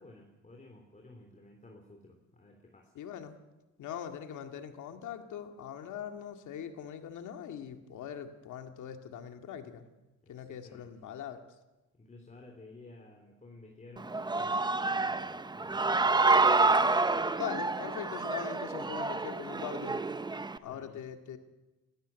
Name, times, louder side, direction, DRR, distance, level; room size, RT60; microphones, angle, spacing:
voice 1, 0.0-2.9 10.2-10.9 11.9-16.2 16.5-16.6 20.6-21.0, left 2 dB, 25° left, 2 dB, 3.4 m, -54 dB
voice 2, 2.9-3.4 3.8-9.9 10.3-11.4 17.4-20.0 20.6-21.4, left 9 dB, 75° left, 6 dB, 2.1 m, -41 dB
Human voice / Cheering, 14.0-20.6, right 3 dB, 15° right, 0.8 m, -28 dB
21.0 x 13.5 x 9.2 m, 1.1 s
cardioid pair, 90°, 30 cm